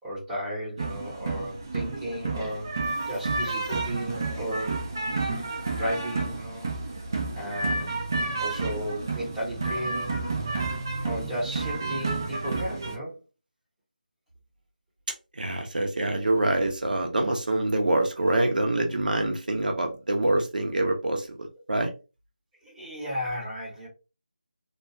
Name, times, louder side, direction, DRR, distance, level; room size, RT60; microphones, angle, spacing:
voice 1, 0.0-2.7 3.0-4.8 5.3-6.7 7.3-8.0 8.4-10.2 11.0-13.2 22.6-23.9, equal, ahead, -9 dB, 0.8 m, -34 dB
sound 1, 0.8-13.0, right 3 dB, 20° right, 0.3 m, -30 dB
voice 2, 15.4-21.3 21.7-21.9, right 2 dB, 65° right, 3 dB, 0.6 m, -25 dB
2.3 x 2.2 x 2.8 m, 0.30 s
figure-of-eight pair, 175°, 5 cm